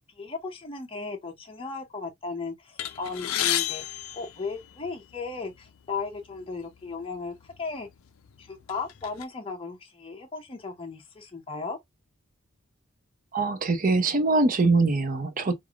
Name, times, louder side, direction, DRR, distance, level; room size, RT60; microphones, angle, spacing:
voice 1, 0.1-3.8 4.1-7.9 8.4-11.8, left 4 dB, 25° left, 0.5 m, -36 dB
sound 1, 2.8-5.1 6.0-6.1 6.4-6.6 7.4-7.6 8.1-9.2, left 12 dB, 75° left, 0.4 m, -31 dB
voice 2, 13.3-15.5, right 3 dB, 40° right, 0.5 m, -23 dB
3.3 x 2.4 x 2.3 m
head